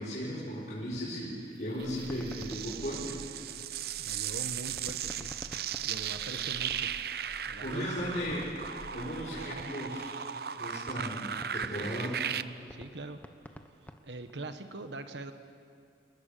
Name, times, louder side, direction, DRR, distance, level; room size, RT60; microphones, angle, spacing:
voice 1, 0.0-3.2 5.8-6.4 7.6-8.5 8.9-10.2 10.6-12.2, equal, 45° left, -9 dB, 5.2 m, -36 dB
sound 1, 1.8-9.6, equal, 30° left, 1.5 m, -51 dB
sound 2, 1.8-12.4, right 9 dB, 60° right, 0.6 m, -37 dB
sound 3, 2.1-3.8 4.8-7.2 7.5-7.6 7.9-10.0 10.4-10.5 10.8-14.5, equal, 10° left, 1.0 m, -50 dB
voice 2, 4.0-5.3 5.8-6.9 7.5-8.4 11.7-11.9 12.7-13.2 14.0-15.3, right 2 dB, 85° right, 8 dB, 1.4 m, -42 dB
27.5 x 21.0 x 6.9 m, 2.3 s
head